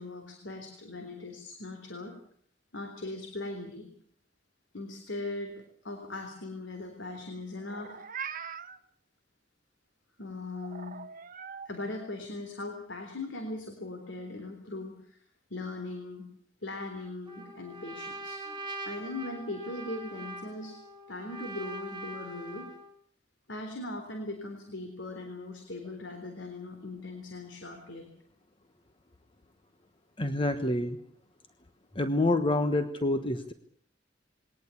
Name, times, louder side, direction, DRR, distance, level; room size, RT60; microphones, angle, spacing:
voice 1, 0.0-2.1 2.7-3.9 4.7-8.0 10.2-11.0 11.7-15.2 15.5-16.3 16.6-18.6 18.9-20.8 21.1-22.7 23.5-28.1, left 2 dB, 75° left, 5 dB, 3.6 m, -39 dB
Meow, 7.6-8.8 10.6-11.7, right 6 dB, 50° right, 1.3 m, -41 dB
Trumpet, 17.3-22.9, right 1 dB, 25° right, 3.8 m, -42 dB
voice 2, 30.2-31.0 31.9-33.5, left 2 dB, 30° left, 9 dB, 1.3 m, -27 dB
21.5 x 18.5 x 8.4 m, 0.62 s
head